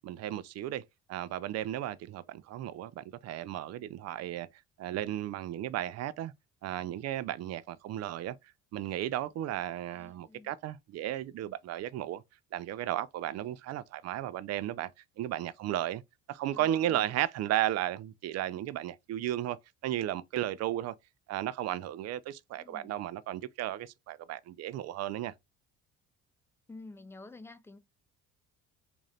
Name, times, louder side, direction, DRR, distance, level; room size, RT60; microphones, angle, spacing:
voice 1, 0.0-0.8 1.1-4.5 4.8-6.3 6.6-8.4 8.7-12.2 12.5-14.9 15.2-16.0 16.3-19.6 19.8-20.9 21.3-25.3, right 12 dB, 55° right, 0.4 m, -34 dB
voice 2, 9.9-10.5 16.5-17.1 22.5-22.9 26.7-27.8, left 3 dB, 10° left, 0.3 m, -50 dB
3.8 x 2.6 x 3.2 m
cardioid pair, 105°, 31 cm